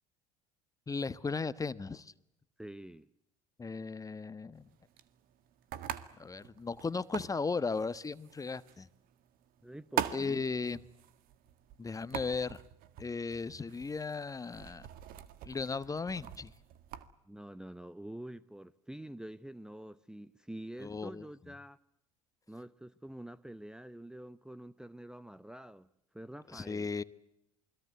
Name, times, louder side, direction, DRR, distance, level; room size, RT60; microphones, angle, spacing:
voice 1, 0.9-2.1 3.6-4.7 6.2-8.9 10.1-10.8 11.8-12.6 13.0-14.9 15.4-16.5 20.8-21.2 26.5-27.0, left 4 dB, 20° left, 16 dB, 1.2 m, -36 dB
voice 2, 2.6-3.1 9.6-10.4 17.3-21.8 22.5-25.9 26.1-26.9, right 1 dB, 5° right, 16 dB, 0.9 m, -47 dB
sound 1, 4.6-17.1, right 11 dB, 60° right, 1.8 m, -44 dB
28.5 x 21.5 x 8.0 m, 0.81 s
hypercardioid pair, 70°, 17 cm